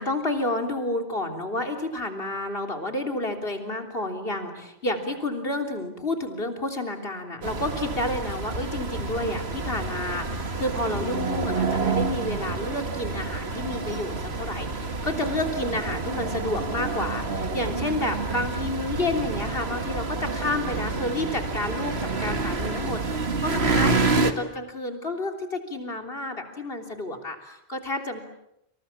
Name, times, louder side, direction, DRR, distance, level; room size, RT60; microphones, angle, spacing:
voice 1, 0.0-28.2, left 2 dB, 65° left, 4 dB, 3.7 m, -30 dB
sound 1, 7.4-24.3, right 3 dB, 75° right, 2.2 m, -28 dB
29.0 x 27.5 x 7.3 m, 0.78 s
omnidirectional pair, 1.1 m